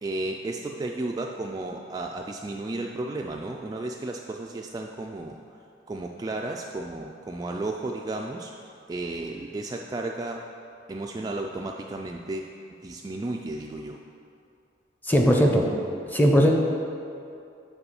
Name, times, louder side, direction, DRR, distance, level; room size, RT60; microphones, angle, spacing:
voice 1, 0.0-5.4 5.9-10.5 10.9-12.5 12.8-14.0, right 2 dB, 20° right, 1 dB, 0.3 m, -33 dB
voice 2, 15.0-15.7 16.1-16.5, equal, 10° left, 1 dB, 0.7 m, -18 dB
6.9 x 4.7 x 6.9 m, 2.5 s
head